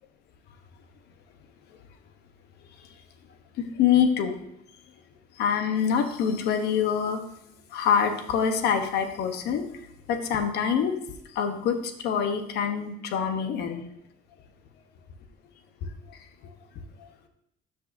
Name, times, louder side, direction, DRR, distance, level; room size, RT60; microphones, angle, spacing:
voice 1, 3.6-4.3 5.4-7.2 7.7-9.6 10.1-10.9 11.3-13.9, left 7 dB, 75° left, 6 dB, 1.0 m, -25 dB
12.5 x 5.4 x 2.6 m, 0.77 s
cardioid pair, 110°, 17 cm